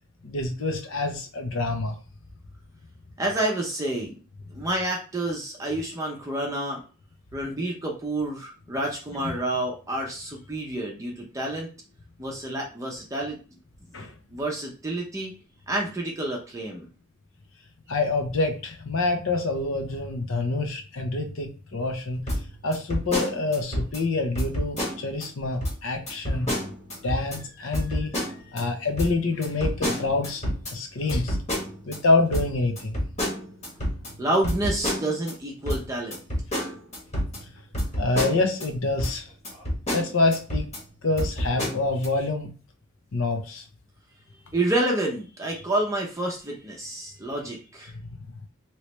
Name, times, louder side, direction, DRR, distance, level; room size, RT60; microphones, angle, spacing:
voice 1, 0.2-1.9 9.2-9.3 13.9-14.1 17.9-22.2 22.6-26.5 27.0-31.4 31.8-33.0 38.0-39.2 39.9-40.7 41.0-42.5 43.1-43.6, left 3 dB, 70° left, 5 dB, 0.8 m, -26 dB
voice 2, 3.2-4.2 4.5-6.8 7.3-11.7 12.2-13.4 13.9-14.0 14.3-15.3 15.7-16.9 34.2-36.2 44.5-47.9, right 1 dB, 15° right, -1 dB, 0.6 m, -29 dB
sound 1, 22.3-24.0 24.3-25.3 25.6-25.8 26.1-27.4 27.7-28.6 29.0-32.0 32.3-35.3 35.7-38.7 39.0-39.1 39.4-40.8 41.2-42.1, equal, 35° left, 1.3 m, -29 dB
3.1 x 3.0 x 3.1 m, 0.35 s
head